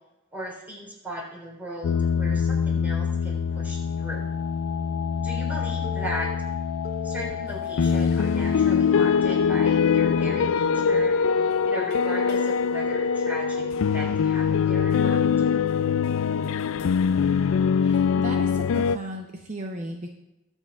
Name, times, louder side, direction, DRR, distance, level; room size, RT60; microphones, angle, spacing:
voice 1, 0.3-4.3 5.2-6.3 7.0-15.2, equal, 10° right, -3 dB, 3.8 m, -37 dB
sound 1, 1.8-19.0, left 6 dB, 85° left, 0.3 m, -23 dB
Telephone, 5.8-6.3 6.8-7.4 7.8-8.4 8.9-9.4 9.9-10.4 10.9-11.4 11.9-12.4 12.9-13.4, left 3 dB, 45° left, 2.2 m, -37 dB
voice 2, 17.8-20.1, right 1 dB, 40° right, 2 dB, 0.7 m, -35 dB
23.0 x 8.1 x 2.4 m, 0.94 s
head